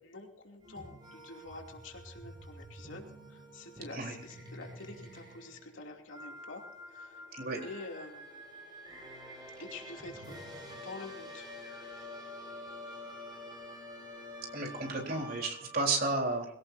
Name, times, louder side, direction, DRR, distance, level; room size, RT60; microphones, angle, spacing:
voice 1, 0.0-7.2 7.6-8.7 9.6-10.4 10.8-11.5, left 2 dB, 90° left, 1 dB, 2.8 m, -47 dB
sound 1, 0.6-16.0, equal, 25° right, 7.7 m, -48 dB
voice 2, 14.5-16.5, right 3 dB, 50° right, 1 dB, 3.9 m, -32 dB
22.0 x 17.0 x 2.7 m, 0.71 s
head